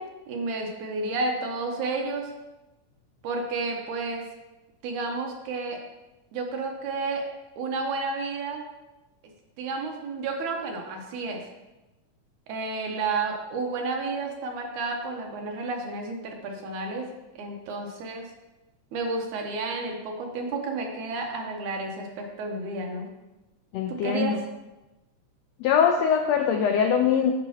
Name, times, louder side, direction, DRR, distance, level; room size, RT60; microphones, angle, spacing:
voice 1, 0.0-2.3 3.2-4.2 4.8-5.8 6.3-7.2 7.6-8.6 9.6-11.4 12.5-17.1 17.4-18.3 18.9-23.1 23.9-24.4, right 3 dB, 80° right, 2 dB, 2.3 m, -31 dB
voice 2, 23.7-24.4 25.6-27.3, left 7 dB, 85° left, 4 dB, 1.5 m, -22 dB
9.5 x 6.3 x 2.9 m, 1.0 s
omnidirectional pair, 3.5 m